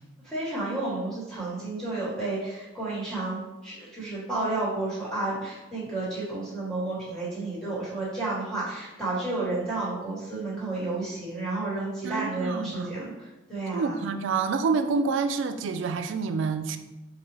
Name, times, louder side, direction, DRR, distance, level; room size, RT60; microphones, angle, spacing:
voice 1, 0.2-14.0, right 2 dB, 5° left, -8 dB, 1.3 m, -31 dB
voice 2, 12.0-12.9 13.7-16.8, right 5 dB, 70° right, 8 dB, 0.3 m, -27 dB
4.7 x 2.2 x 3.2 m, 1.0 s
head